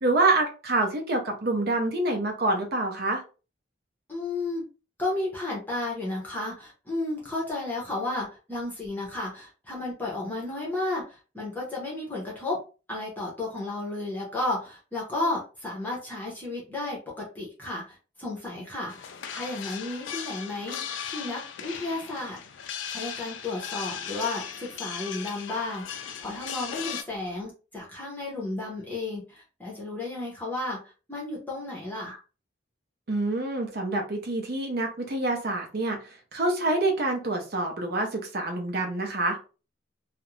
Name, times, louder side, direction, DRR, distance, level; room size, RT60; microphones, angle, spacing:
voice 1, 0.0-3.2 33.1-39.4, right 2 dB, 50° right, 3 dB, 0.6 m, -27 dB
voice 2, 4.1-4.6 5.0-12.6 12.9-22.4 22.9-32.2, left 2 dB, 10° left, -4 dB, 0.7 m, -33 dB
sound 1, 18.9-27.0, left 8 dB, 70° left, 0.4 m, -37 dB
2.5 x 2.0 x 3.0 m, 0.34 s
head